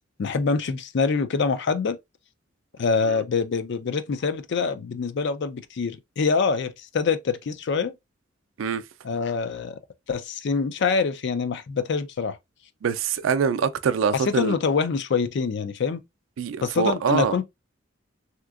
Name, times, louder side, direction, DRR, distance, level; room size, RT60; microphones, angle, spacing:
voice 1, 0.2-2.0 2.8-7.9 9.0-9.8 10.1-12.4 14.1-16.0 16.6-17.4, left 5 dB, 60° left, 0.4 m, -25 dB
voice 2, 12.8-14.5 16.4-17.3, right 6 dB, 80° right, 0.4 m, -24 dB
3.3 x 2.9 x 2.4 m
head